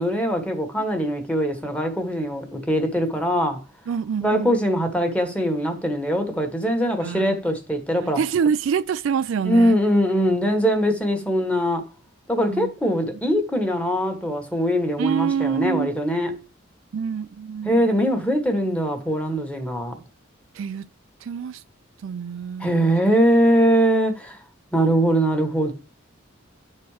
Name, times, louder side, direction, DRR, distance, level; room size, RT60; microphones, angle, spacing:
voice 1, 0.0-3.6 4.2-8.2 9.4-11.8 12.3-16.3 17.6-20.0 22.6-24.4 24.7-25.7, equal, 5° left, 1.4 m, -22 dB
voice 2, 3.9-4.6 7.0-7.4 8.2-9.8 12.5-12.7 15.0-15.9 16.9-17.9 20.5-20.9 21.2-21.6 22.0-22.9, right 7 dB, 70° right, 0.3 m, -26 dB
10.5 x 4.3 x 4.8 m
head